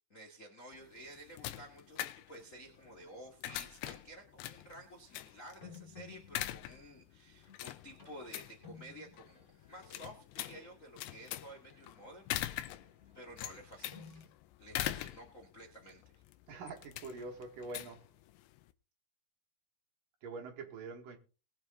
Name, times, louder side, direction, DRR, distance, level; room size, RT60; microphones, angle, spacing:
voice 1, 0.1-12.8 13.1-14.2 14.6-16.2, right 1 dB, 40° left, 1.2 m, -53 dB
sound 1, 0.7-18.7, left 14 dB, 85° left, 2.9 m, -44 dB
sound 2, 1.8-2.2 2.7-3.3 4.0-4.1 5.6-14.3, left 6 dB, 20° left, 2.4 m, -58 dB
voice 2, 16.5-18.0 20.2-21.2, right 3 dB, 60° right, 3.1 m, -45 dB
21.5 x 7.2 x 3.8 m
omnidirectional pair, 4.8 m